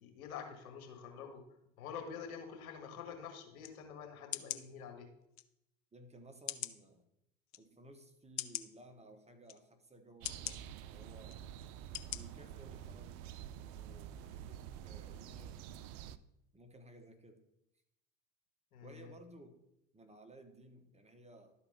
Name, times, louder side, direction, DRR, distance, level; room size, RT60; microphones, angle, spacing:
voice 1, 0.0-1.4 1.8-5.1 18.7-19.1, left 7 dB, 75° left, 4 dB, 1.9 m, -47 dB
sound 1, 3.6-3.7 4.3-4.6 5.4-5.5 6.5-6.8 7.5-7.6 8.4-8.7 9.5-9.6 10.2-10.6 11.3-11.4 11.9-12.2 12.6-12.7, left 14 dB, 40° left, 0.6 m, -40 dB
voice 2, 5.9-7.1 7.6-11.4 12.1-13.3 13.6-15.6 16.5-17.4 18.8-19.6 19.9-21.5, right 1 dB, 15° right, 5 dB, 1.1 m, -57 dB
sound 2, 10.2-16.2, right 10 dB, 55° right, 0.6 m, -48 dB
12.0 x 4.3 x 5.6 m, 0.82 s
hypercardioid pair, 80°, 43 cm